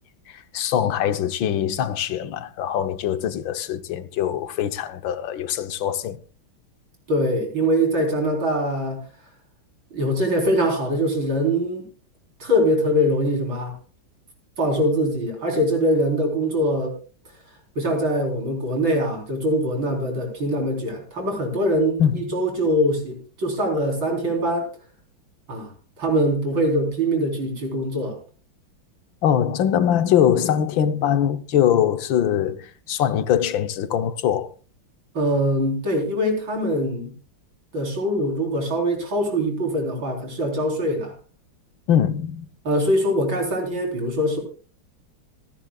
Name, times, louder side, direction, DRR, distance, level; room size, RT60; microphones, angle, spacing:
voice 1, 0.3-6.2 22.0-22.4 29.2-34.5 41.9-42.5, left 9 dB, 75° left, 1.6 m, -22 dB
voice 2, 7.1-9.0 9.9-11.8 12.4-13.7 14.6-16.9 17.8-24.7 25.5-25.7 26.0-28.2 35.1-37.1 37.7-41.1 42.6-44.4, equal, 70° right, 4.8 m, -23 dB
26.5 x 10.5 x 2.3 m
omnidirectional pair, 2.2 m